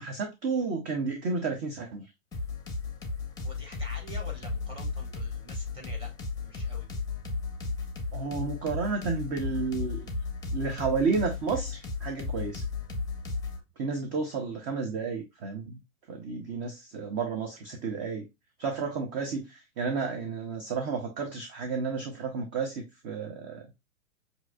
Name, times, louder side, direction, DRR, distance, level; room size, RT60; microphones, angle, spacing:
voice 1, 0.0-2.0 8.1-10.1 10.5-12.6 13.8-15.8 16.1-18.3 18.6-23.7, right 4 dB, 30° right, 0.7 m, -31 dB
sound 1, 2.3-13.6, left 4 dB, 10° left, 0.7 m, -35 dB
voice 2, 3.4-6.1 6.4-6.9, equal, 15° right, 1.6 m, -46 dB
5.9 x 2.7 x 2.3 m
figure-of-eight pair, 110°, 41 cm